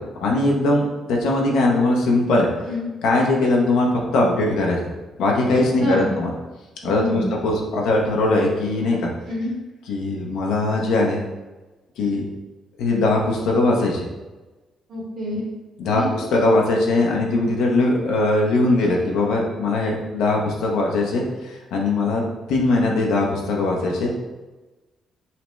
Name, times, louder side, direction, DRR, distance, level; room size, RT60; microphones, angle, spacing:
voice 1, 0.0-2.5 3.0-4.8 5.2-6.3 6.8-9.1 9.9-11.2 12.0-12.2 12.8-14.1 15.8-22.2 22.5-24.1, left 2 dB, 85° left, -1 dB, 0.7 m, -20 dB
voice 2, 5.8-6.1 6.8-7.3 9.3-9.5 14.9-15.4 15.9-16.1, left 1 dB, 60° right, -5 dB, 1.4 m, -27 dB
5.6 x 2.1 x 3.2 m, 1.2 s
cardioid pair, 90°, 0 cm